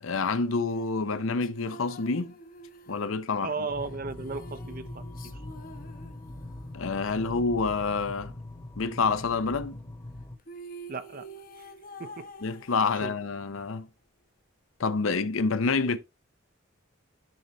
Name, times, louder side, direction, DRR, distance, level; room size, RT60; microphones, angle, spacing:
voice 1, 0.0-2.3 2.9-3.5 6.7-8.3 8.8-9.8 12.4-13.9 14.8-16.0, left 4 dB, 90° left, 0.7 m, -28 dB
sound 1, 0.7-6.8 10.1-10.2 10.4-13.6, right 1 dB, 45° left, 0.9 m, -48 dB
voice 2, 3.4-5.4 10.9-11.3 12.0-12.3 13.0-13.1, right 4 dB, 45° right, 0.6 m, -35 dB
sound 2, 3.7-10.4, left 1 dB, 20° left, 1.0 m, -42 dB
11.0 x 4.0 x 3.0 m
head